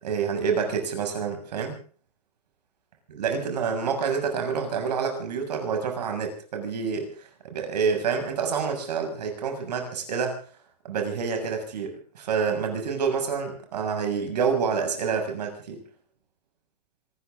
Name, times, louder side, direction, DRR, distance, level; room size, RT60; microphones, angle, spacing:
voice 1, 0.0-1.8 3.1-10.4 10.8-15.8, right 6 dB, 85° right, 4 dB, 6.9 m, -28 dB
26.5 x 13.5 x 3.8 m, 0.44 s
hypercardioid pair, 135°, 20 cm